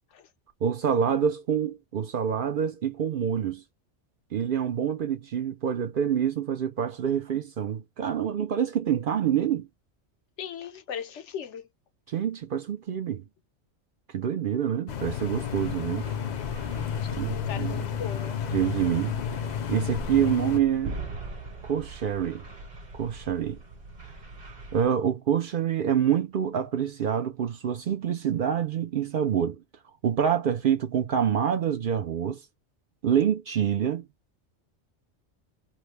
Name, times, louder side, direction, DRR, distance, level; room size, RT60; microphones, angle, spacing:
voice 1, 0.6-3.6 4.3-9.7 12.1-13.2 14.1-16.1 17.1-17.8 18.5-19.2 19.7-21.0 21.6-22.4 22.9-23.6 24.7-29.6 30.0-32.4 33.0-34.0, right 8 dB, 60° right, 0.6 m, -26 dB
voice 2, 10.4-11.7 17.0-18.4, left 8 dB, 80° left, 1.0 m, -38 dB
sound 1, 14.9-20.6, left 8 dB, 55° left, 0.5 m, -32 dB
sound 2, 15.3-24.8, right 3 dB, 40° right, 1.1 m, -43 dB
3.2 x 2.1 x 3.2 m
omnidirectional pair, 1.2 m